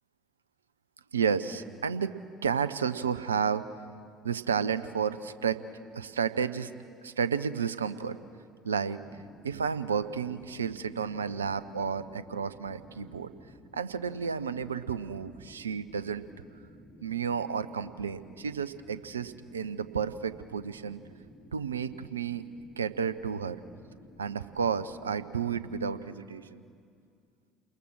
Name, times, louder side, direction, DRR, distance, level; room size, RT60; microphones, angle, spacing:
voice 1, 1.1-2.2 2.4-3.7 4.2-5.6 5.9-6.7 7.0-8.2 8.6-9.0 9.4-13.3 13.7-16.2 17.0-21.0 21.5-22.5 22.8-23.6 24.2-26.6, right 6 dB, 85° right, 15 dB, 0.7 m, -31 dB
sound 1, 8.9-26.1, equal, 5° left, 5.0 m, -54 dB
29.0 x 21.0 x 6.3 m, 2.3 s
figure-of-eight pair, 60°, 0 cm